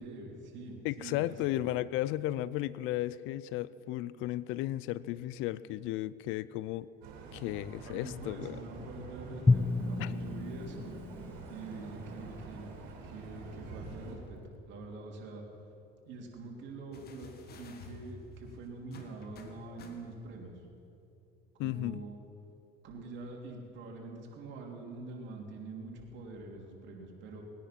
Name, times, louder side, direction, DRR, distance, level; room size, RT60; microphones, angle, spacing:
voice 1, 0.0-1.6 7.9-10.9 11.5-12.7 13.0-15.4 16.0-20.6 21.6-22.2 22.8-27.4, right 2 dB, 60° right, 0 dB, 3.1 m, -45 dB
voice 2, 0.8-6.9 7.3-8.6 10.0-10.1 21.6-22.0, left 15 dB, 70° left, 18 dB, 0.5 m, -34 dB
sound 1, 7.0-14.1, right 4 dB, 80° right, 3.0 m, -46 dB
Drum, 9.5-12.4, left 3 dB, 10° left, 0.3 m, -31 dB
sound 2, 16.9-20.4 21.6-21.7, left 3 dB, 50° left, 1.8 m, -52 dB
20.0 x 10.0 x 6.0 m, 2.7 s
supercardioid pair, 100°, 21 cm